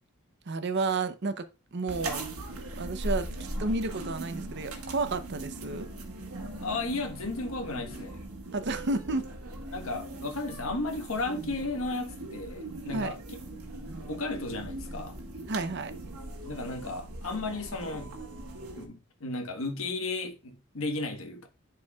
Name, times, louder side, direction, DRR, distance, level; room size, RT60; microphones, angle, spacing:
voice 1, 0.5-2.2 2.8-3.3 3.6-5.9 8.5-9.3 12.9-13.1 15.5-15.9, right 3 dB, 55° right, 0.6 m, -31 dB
sound 1, 1.9-18.9, right 1 dB, 85° right, 1.4 m, -40 dB
voice 2, 6.6-8.2 9.7-13.2 13.5-13.6 14.1-15.2 16.5-18.1 18.7-21.5, left 2 dB, 70° left, 1.2 m, -34 dB
10.5 x 4.6 x 2.3 m
head